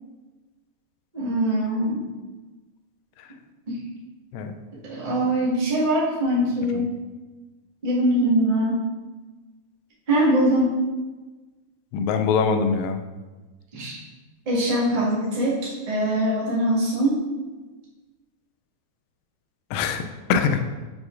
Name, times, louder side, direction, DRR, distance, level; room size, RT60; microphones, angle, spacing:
voice 1, 1.1-2.1 3.7-3.8 4.8-6.8 7.8-8.8 10.1-10.7 13.7-14.0 14.4-17.2, right 1 dB, 40° right, -8 dB, 0.6 m, -22 dB
voice 2, 11.9-13.0 19.7-20.0 20.3-20.6, left 6 dB, 85° left, 7 dB, 2.2 m, -22 dB
8.6 x 4.5 x 2.5 m, 1.2 s
omnidirectional pair, 4.1 m